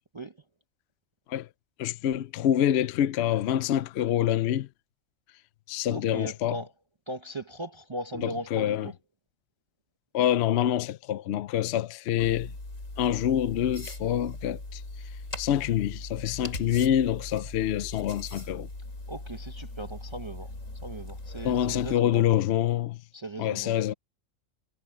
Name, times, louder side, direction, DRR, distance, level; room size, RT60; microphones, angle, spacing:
voice 1, 1.8-4.7 5.7-6.6 8.2-8.9 10.1-12.5 13.0-14.8 15.4-18.7 21.4-23.0 23.4-23.9, left 11 dB, 65° left, 0.8 m, -26 dB
voice 2, 5.9-6.7 7.1-8.9 19.1-20.5 20.8-22.3 23.1-23.8, right 1 dB, 25° right, 0.8 m, -38 dB
sound 1, 12.2-22.0, left 2 dB, 85° left, 5.0 m, -40 dB
omnidirectional pair, 1.3 m